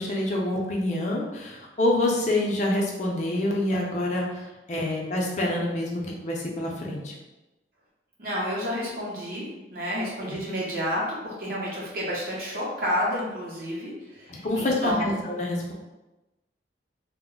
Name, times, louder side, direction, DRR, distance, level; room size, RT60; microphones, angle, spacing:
voice 1, 0.0-7.2 10.3-10.4 14.3-15.7, left 1 dB, 40° left, -2 dB, 0.5 m, -27 dB
voice 2, 8.2-15.2, equal, 55° right, -5 dB, 0.6 m, -30 dB
2.1 x 2.0 x 3.6 m, 1.0 s
head